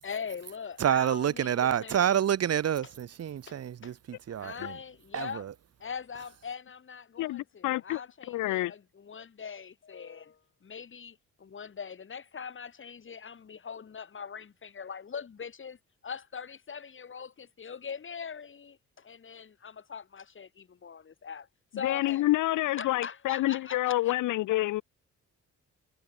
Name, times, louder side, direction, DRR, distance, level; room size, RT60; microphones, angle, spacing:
voice 1, 0.0-2.1 3.5-3.6 3.8-3.9 4.4-5.4 5.8-15.8 16.0-21.5 21.7-22.3 22.8-24.1, left 6 dB, 40° left, 3.7 m, -42 dB
voice 2, 0.8-4.8 5.1-5.5, right 9 dB, 55° right, 1.5 m, -28 dB
voice 3, 7.2-8.0 8.3-8.7 21.8-24.8, left 16 dB, 90° left, 2.4 m, -28 dB
cardioid pair, 90°, 30 cm